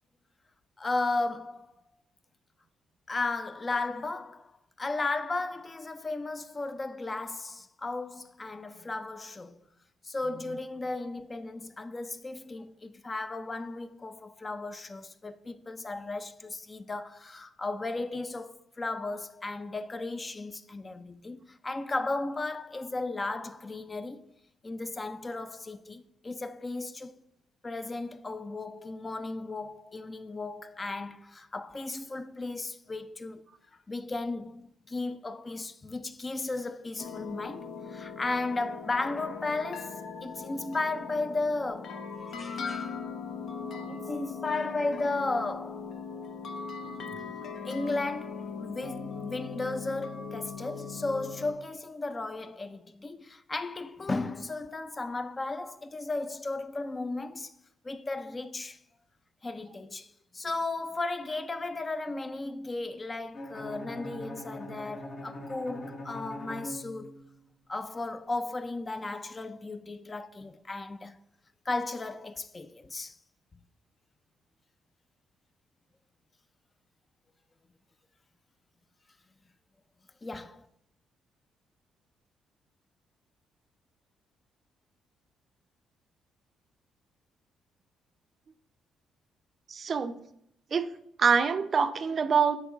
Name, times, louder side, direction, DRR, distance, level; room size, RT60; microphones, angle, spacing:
voice 1, 0.8-1.7 3.1-4.5 4.8-9.6 10.0-24.3 24.6-27.2 27.6-33.4 33.7-43.1 43.9-45.9 47.6-57.5 57.8-58.8 59.4-67.2 67.7-71.2 71.7-73.2 80.2-80.7, left 3 dB, 25° left, 0.4 m, -35 dB
sound 1, 37.0-51.5, left 5 dB, 65° left, 0.6 m, -40 dB
voice 2, 43.6-44.0 46.8-47.0 89.7-90.2 90.7-90.9 91.2-92.6, right 6 dB, 45° right, 0.4 m, -26 dB
Bowed string instrument, 63.3-67.5, left 1 dB, 50° left, 1.0 m, -42 dB
8.1 x 3.1 x 4.6 m
cardioid pair, 90°, 0 cm